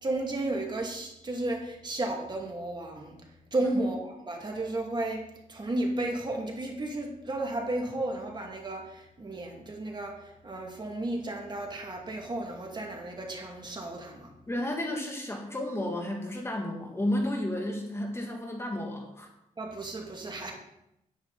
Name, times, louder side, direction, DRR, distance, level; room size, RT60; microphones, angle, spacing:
voice 1, 0.0-3.2 3.5-5.2 5.5-14.3 19.6-20.5, right 2 dB, 30° right, 1 dB, 2.2 m, -33 dB
voice 2, 14.5-19.3, left 1 dB, 15° left, 1 dB, 1.9 m, -32 dB
10.0 x 9.4 x 4.1 m, 0.84 s
cardioid pair, 100°, 14 cm